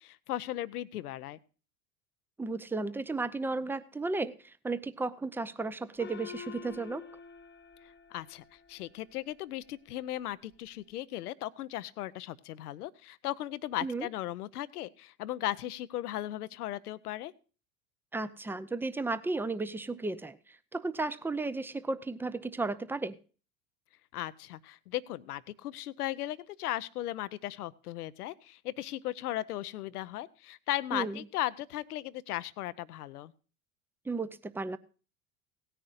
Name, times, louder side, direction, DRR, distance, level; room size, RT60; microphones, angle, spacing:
voice 1, 0.0-1.4 7.8-17.3 24.1-33.3, left 14 dB, 75° left, 16 dB, 0.7 m, -37 dB
voice 2, 2.4-7.1 13.8-14.1 18.1-23.2 30.9-31.2 34.1-34.8, right 3 dB, 5° right, 14 dB, 0.6 m, -34 dB
Gong, 6.0-8.9, left 7 dB, 25° left, 1.1 m, -47 dB
17.5 x 10.0 x 2.5 m, 0.36 s
hypercardioid pair, 80°, 46 cm